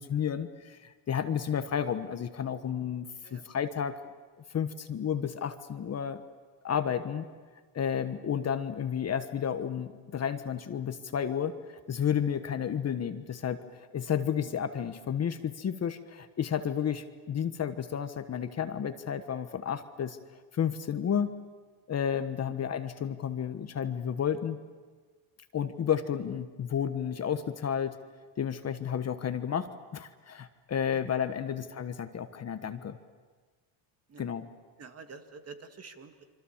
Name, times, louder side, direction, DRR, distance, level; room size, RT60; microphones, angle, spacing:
voice 1, 0.0-3.9 4.5-6.2 6.6-7.2 7.7-13.6 13.9-20.2 20.5-21.3 21.9-24.6 25.5-28.0 28.4-33.0 34.2-34.5, left 8 dB, 35° left, 9 dB, 1.2 m, -32 dB
voice 2, 34.8-36.2, right 4 dB, 30° right, 7 dB, 2.0 m, -48 dB
27.0 x 25.0 x 7.3 m, 1.5 s
cardioid pair, 120°, 46 cm